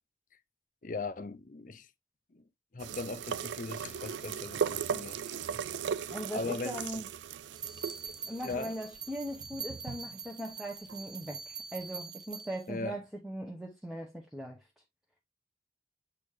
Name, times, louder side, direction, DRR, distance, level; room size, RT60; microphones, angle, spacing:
voice 1, 0.8-1.9 2.3-2.4 2.7-5.6 5.9-6.0 6.3-7.0 8.2-8.8 12.7-13.0, left 3 dB, 45° left, 0.6 m, -39 dB
sound 1, 2.8-10.2 10.9-11.0, right 7 dB, 80° right, 0.4 m, -37 dB
voice 2, 6.1-7.1 8.3-14.6, equal, ahead, 0.9 m, -40 dB
sound 2, 7.6-12.7, right 5 dB, 25° right, 0.6 m, -44 dB
8.5 x 4.1 x 3.3 m
head